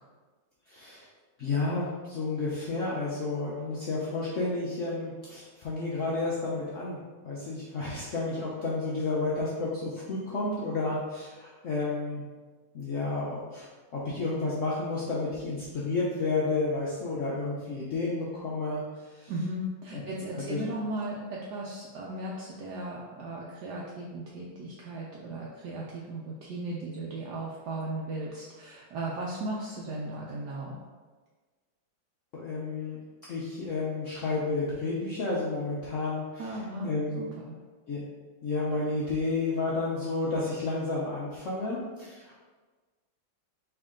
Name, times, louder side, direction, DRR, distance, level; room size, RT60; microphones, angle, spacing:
voice 1, 0.7-1.1 1.4-7.0 7.2-12.2 12.7-13.7 13.9-18.8 19.1-19.3 19.9-20.0 20.3-20.6 32.3-33.0 33.3-37.2 37.9-38.0 38.4-42.4, left 3 dB, 70° left, -6 dB, 0.7 m, -31 dB
voice 2, 19.3-30.8 36.4-37.6, right 1 dB, 70° right, -4 dB, 1.1 m, -36 dB
4.6 x 2.9 x 3.6 m, 1.4 s
omnidirectional pair, 2.1 m